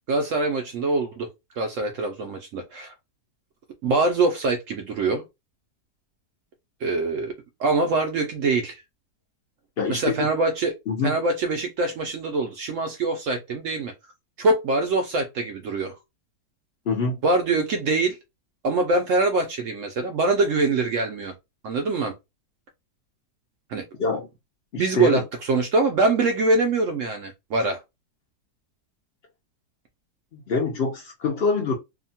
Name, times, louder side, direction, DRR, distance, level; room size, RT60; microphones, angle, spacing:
voice 1, 0.1-2.9 3.8-5.2 6.8-7.3 7.6-8.8 9.9-10.8 11.0-13.9 14.4-15.9 17.2-18.2 18.6-21.3 21.6-22.1 23.7-23.8 24.8-27.8, right 3 dB, 70° right, 0.7 m, -24 dB
voice 2, 9.8-10.1 10.9-11.2 16.9-17.2 24.0-24.3 24.7-25.2 30.3-31.7, left 4 dB, 65° left, 0.6 m, -25 dB
2.8 x 2.2 x 2.7 m
omnidirectional pair, 1.7 m